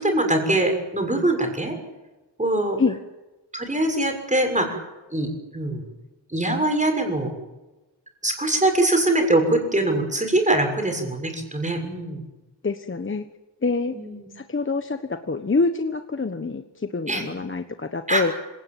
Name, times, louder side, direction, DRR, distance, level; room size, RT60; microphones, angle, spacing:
voice 1, 0.0-1.7 2.4-2.8 3.5-4.8 5.1-5.8 6.3-7.3 8.2-12.2 13.9-14.3 17.1-17.2 18.1-18.3, right 1 dB, 15° right, 4 dB, 6.6 m, -23 dB
voice 2, 12.6-13.3 13.6-14.0 14.3-18.3, left 4 dB, 25° left, 8 dB, 1.3 m, -26 dB
27.0 x 18.5 x 9.3 m, 1.1 s
wide cardioid pair, 130°, 44 cm